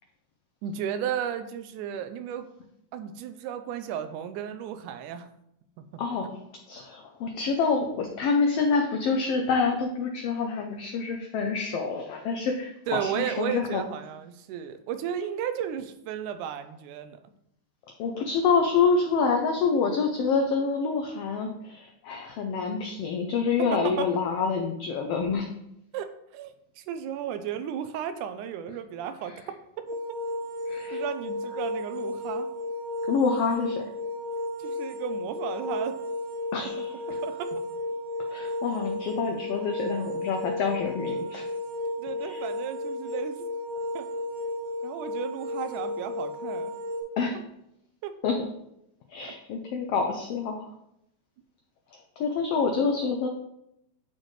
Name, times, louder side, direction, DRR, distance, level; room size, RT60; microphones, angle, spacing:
voice 1, 0.6-2.5 2.9-5.3 5.8-6.0 12.9-17.2 23.7-24.1 25.9-29.3 30.9-32.5 34.6-36.0 37.2-37.5 42.0-43.5 43.9-44.1 44.8-46.7 48.0-48.1 49.2-49.3, right 9 dB, 85° right, 9 dB, 2.1 m, -34 dB
voice 2, 6.0-6.3 6.7-13.8 18.0-25.5 30.7-31.0 33.1-33.9 36.5-36.9 38.3-41.4 42.2-42.4 47.2-47.4 48.2-48.5 49.1-50.7 51.9-53.3, left 5 dB, 90° left, 2 dB, 1.3 m, -27 dB
sound 1, 29.9-47.0, left 1 dB, 60° right, 2.2 m, -33 dB
9.8 x 4.3 x 3.1 m, 0.81 s
omnidirectional pair, 3.5 m